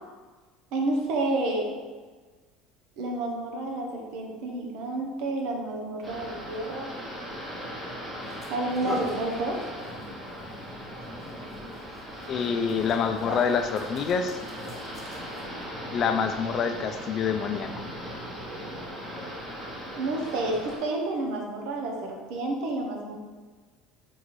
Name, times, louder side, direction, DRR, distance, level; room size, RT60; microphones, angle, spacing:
voice 1, 0.7-1.8 3.0-6.9 8.5-9.6 19.9-23.1, right 2 dB, 65° right, 1 dB, 0.7 m, -30 dB
sound 1, 6.0-20.8, equal, 15° right, 1.1 m, -39 dB
sound 2, 7.5-7.6 8.2-15.6, left 1 dB, 10° left, 0.9 m, -41 dB
voice 2, 12.3-14.4 15.9-17.9, left 6 dB, 45° left, 7 dB, 0.3 m, -27 dB
5.3 x 2.4 x 3.1 m, 1.4 s
supercardioid pair, 115°, 0 cm